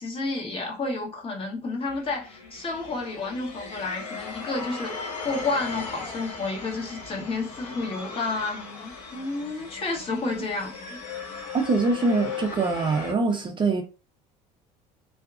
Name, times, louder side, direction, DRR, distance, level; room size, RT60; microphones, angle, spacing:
voice 1, 0.0-11.0, left 3 dB, 30° left, 1.3 m, -31 dB
sound 1, 1.9-13.1, left 5 dB, 85° left, 1.0 m, -38 dB
voice 2, 11.5-13.8, right 3 dB, 30° right, 0.5 m, -24 dB
2.7 x 2.2 x 2.4 m
supercardioid pair, 90°, 18 cm